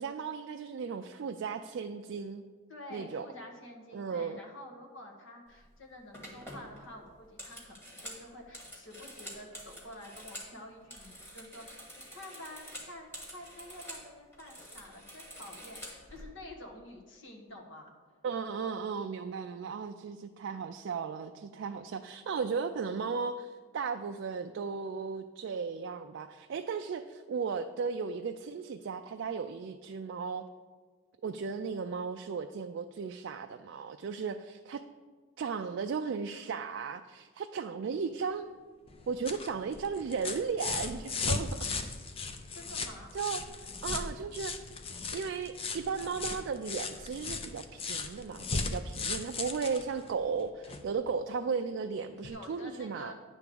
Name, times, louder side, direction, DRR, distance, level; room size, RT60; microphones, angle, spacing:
voice 1, 0.0-2.4 2.9-3.3 3.9-4.4 18.2-30.5 31.2-34.8 35.4-38.5 39.1-41.7 43.1-43.4 43.8-44.6 45.1-53.1, right 5 dB, 60° right, 6 dB, 0.3 m, -35 dB
voice 2, 2.7-17.9 42.5-43.1 52.3-53.1, left 1 dB, 60° left, 1 dB, 1.4 m, -49 dB
sound 1, 5.5-5.7 6.1-10.5 10.8-14.1 14.3-16.2, equal, 10° left, 1.4 m, -47 dB
sound 2, 38.9-50.9 52.2-52.3, left 4 dB, 25° left, 0.4 m, -37 dB
9.8 x 3.5 x 6.8 m, 1.5 s
head